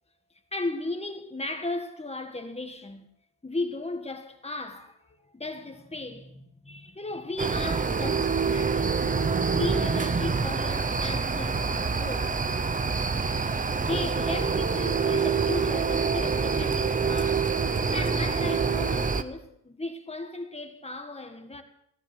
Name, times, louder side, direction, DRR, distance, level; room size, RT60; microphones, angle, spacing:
voice 1, 0.5-3.1 3.4-9.1 9.5-12.3 13.8-17.6 17.9-21.6, left 2 dB, 15° left, 1.8 m, -36 dB
sound 1, 7.4-19.2, right 5 dB, 20° right, 0.7 m, -26 dB
15.0 x 13.5 x 6.1 m
cardioid pair, 140°, 43 cm